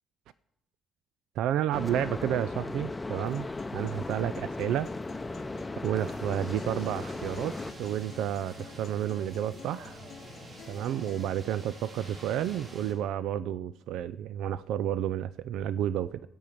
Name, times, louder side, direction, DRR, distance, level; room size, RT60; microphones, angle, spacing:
voice 1, 1.4-3.5 3.7-4.9 5.8-10.0 10.7-16.2, right 11 dB, 90° right, 16 dB, 0.3 m, -31 dB
sound 1, 1.7-7.7, left 2 dB, 15° left, 0.6 m, -37 dB
Acoustic guitar, 3.3-11.3, left 7 dB, 60° left, 0.7 m, -50 dB
sound 2, 6.0-12.9, right 1 dB, 50° right, 3.6 m, -47 dB
13.5 x 5.3 x 8.5 m, 0.85 s
cardioid pair, 90°, 0 cm